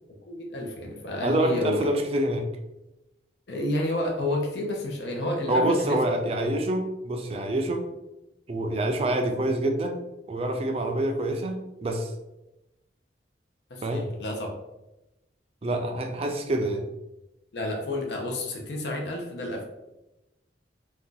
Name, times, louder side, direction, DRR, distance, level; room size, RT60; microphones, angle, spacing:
voice 1, 0.3-1.8 3.5-6.0 13.7-14.5 17.5-19.6, left 1 dB, 70° left, 1 dB, 0.6 m, -30 dB
voice 2, 1.2-2.5 5.5-7.9 8.5-12.1 13.8-14.1 15.6-16.8, right 1 dB, 35° right, 5 dB, 0.3 m, -26 dB
2.7 x 2.3 x 3.8 m, 0.96 s
head